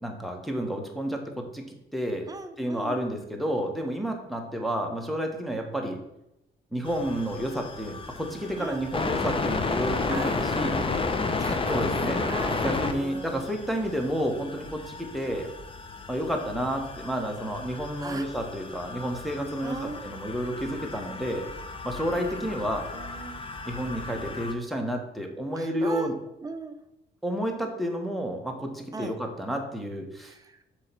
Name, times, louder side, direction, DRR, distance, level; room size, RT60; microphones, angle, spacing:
voice 1, 0.0-2.3 2.6-6.0 6.7-10.8 11.7-12.2 12.6-15.5 16.1-21.5 21.8-22.9 23.6-26.1 27.2-30.3, equal, ahead, 1 dB, 1.4 m, -30 dB
voice 2, 2.3-3.1 8.6-8.8 10.1-10.9 11.4-13.5 13.8-14.1 18.0-18.3 19.6-20.1 22.1-24.4 25.6-26.1 26.4-26.8 28.9-29.1 30.2-30.6, right 3 dB, 20° right, 7 dB, 0.8 m, -39 dB
sound 1, 6.9-24.5, left 3 dB, 25° left, 0.8 m, -33 dB
7.6 x 3.3 x 5.9 m, 0.87 s
cardioid pair, 90°, 20 cm